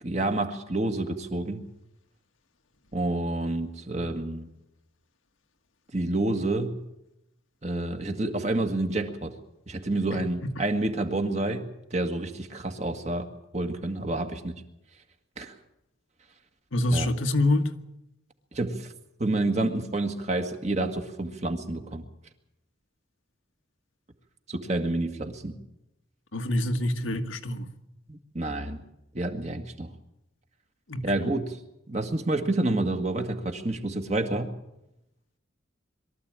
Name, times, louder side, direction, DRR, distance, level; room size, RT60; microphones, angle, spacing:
voice 1, 0.0-1.6 2.9-4.5 5.9-6.8 7.6-9.3 9.7-13.3 13.5-14.6 15.4-15.5 16.9-17.1 18.5-18.9 19.2-22.0 24.5-25.5 28.1-28.8 29.1-29.9 31.0-31.6 31.9-34.5, right 2 dB, 35° right, 1.8 m, -29 dB
voice 2, 10.1-10.6 16.7-17.7 26.3-27.7 30.9-31.1, left 1 dB, 85° left, 1.6 m, -26 dB
22.5 x 13.5 x 8.9 m
head